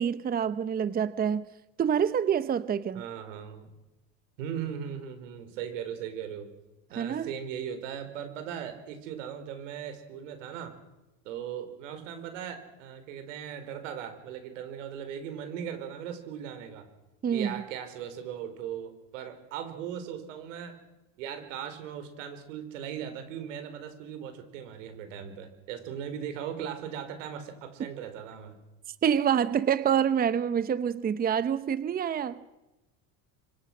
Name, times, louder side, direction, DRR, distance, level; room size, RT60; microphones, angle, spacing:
voice 1, 0.0-1.5 1.8-3.0 6.9-7.3 17.2-17.6 29.0-32.4, right 8 dB, 25° right, 14 dB, 0.9 m, -27 dB
voice 2, 2.9-3.7 4.4-6.5 6.9-10.7 11.2-16.9 17.3-20.8 21.2-28.6, right 8 dB, 90° right, 8 dB, 5.0 m, -38 dB
26.5 x 25.0 x 6.2 m, 1.0 s
supercardioid pair, 120°, 37 cm